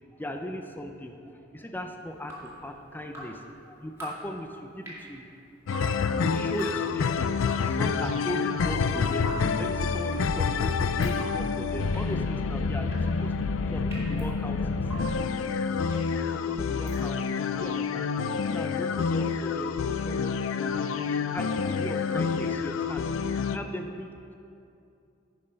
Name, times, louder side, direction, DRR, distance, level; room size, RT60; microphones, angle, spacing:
voice 1, 0.1-5.3 6.0-15.0 16.3-24.3, equal, 10° left, 4 dB, 0.5 m, -38 dB
Drip, 2.0-17.5, right 1 dB, 15° right, 1.9 m, -46 dB
sound 1, 5.7-23.6, left 5 dB, 80° left, 0.4 m, -28 dB
9.8 x 5.5 x 5.2 m, 2.6 s
head